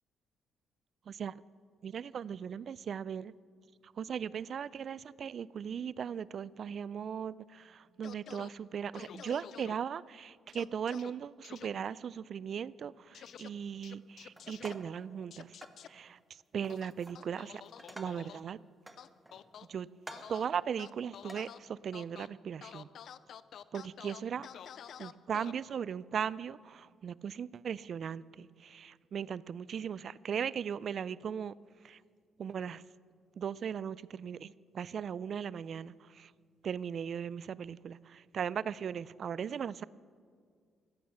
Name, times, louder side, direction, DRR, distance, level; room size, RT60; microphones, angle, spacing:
voice 1, 1.8-3.3 4.0-15.5 15.9-16.2 16.5-17.6 18.0-18.6 19.7-19.9 20.3-22.9 23.7-24.5 25.0-31.5 31.8-32.0 32.4-32.8 33.4-36.3 36.6-39.8, right 7 dB, 55° right, 20 dB, 0.3 m, -38 dB
sound 1, 8.0-8.5 8.9-9.7 10.5-11.1 11.4-11.7 13.1-13.5 13.8-14.7 15.3-15.9 16.7-18.4 19.0-19.7 20.1-20.5 20.8-21.6 21.9-22.3 22.6-25.5, left 9 dB, 65° left, 0.4 m, -49 dB
sound 2, 14.4-15.0 15.6-15.8 16.6-17.2 17.6-18.3 18.9-19.5 20.0-20.4 21.2-21.4, right 1 dB, 10° right, 1.0 m, -50 dB
15.0 x 8.8 x 6.9 m, 2.1 s
cardioid pair, 90°, 0 cm